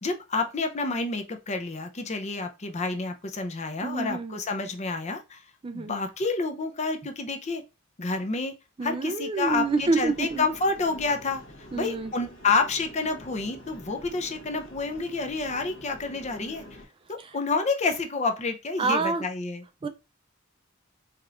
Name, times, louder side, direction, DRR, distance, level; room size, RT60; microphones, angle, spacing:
voice 1, 0.0-5.4 5.7-7.6 8.0-8.6 8.8-16.6 17.1-19.6, left 3 dB, 35° left, 0.6 m, -29 dB
voice 2, 3.8-4.4 5.6-6.0 8.8-10.5 11.7-12.1 17.2-17.4 18.8-19.2 19.8-19.9, right 3 dB, 25° right, 0.3 m, -27 dB
sound 1, 9.5-16.9, left 1 dB, 75° left, 1.3 m, -47 dB
4.9 x 2.9 x 2.4 m
head